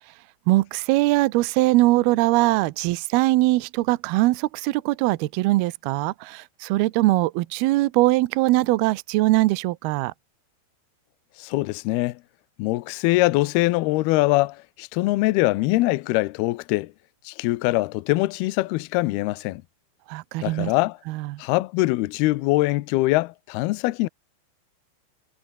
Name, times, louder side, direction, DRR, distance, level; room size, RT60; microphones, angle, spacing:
voice 1, 0.5-10.1 20.1-20.7 21.1-21.4, right 19 dB, 85° right, 2.2 m, -21 dB
voice 2, 11.4-12.2 12.6-16.9 17.3-19.6 20.4-21.0 21.4-24.1, left 20 dB, 85° left, 2.2 m, -23 dB
omnidirectional pair, 5.5 m